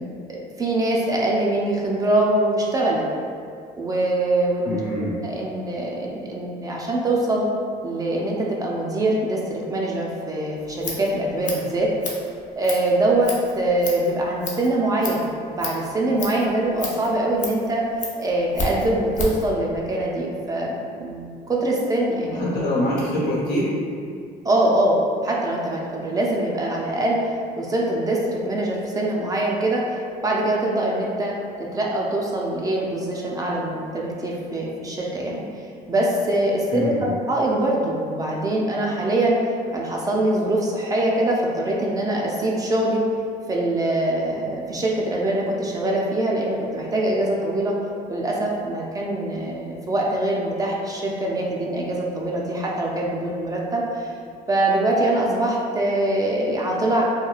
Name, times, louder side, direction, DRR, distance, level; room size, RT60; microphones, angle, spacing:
voice 1, 0.0-3.0 3.8-4.8 5.2-7.5 7.8-11.9 12.6-17.8 18.2-22.4 24.4-35.4 35.9-39.4 39.7-43.0 43.5-47.8 48.1-54.1 54.5-57.0, right 1 dB, 20° right, -3 dB, 0.3 m, -23 dB
voice 2, 4.6-5.1 22.3-23.7 36.7-37.1, left 1 dB, 75° left, -6 dB, 0.9 m, -24 dB
Scissors, 10.6-19.5, left 2 dB, 45° left, 0.6 m, -33 dB
2.9 x 2.2 x 2.3 m, 2.3 s
cardioid pair, 110°, 17 cm